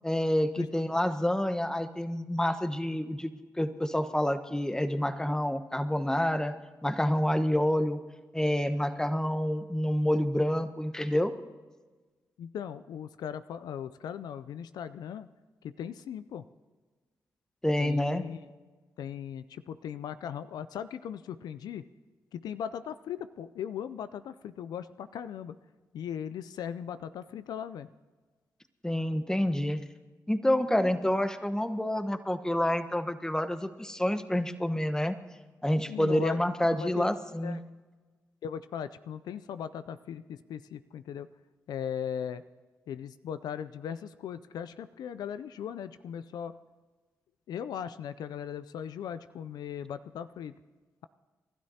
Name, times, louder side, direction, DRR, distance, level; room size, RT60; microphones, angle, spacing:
voice 1, 0.0-6.5 6.8-8.0 8.3-11.3 17.6-18.3 28.8-29.8 30.3-35.1 35.6-37.6, left 1 dB, 10° left, 10 dB, 1.1 m, -28 dB
voice 2, 12.4-15.3 15.6-16.5 17.8-18.5 19.0-21.9 22.3-25.6 25.9-27.9 35.9-36.4 36.6-37.1 37.4-37.6 38.4-41.3 41.7-42.4 42.9-46.6 47.5-50.5, left 8 dB, 75° left, 13 dB, 0.4 m, -38 dB
29.5 x 12.5 x 2.8 m, 1.3 s
supercardioid pair, 40°, 7 cm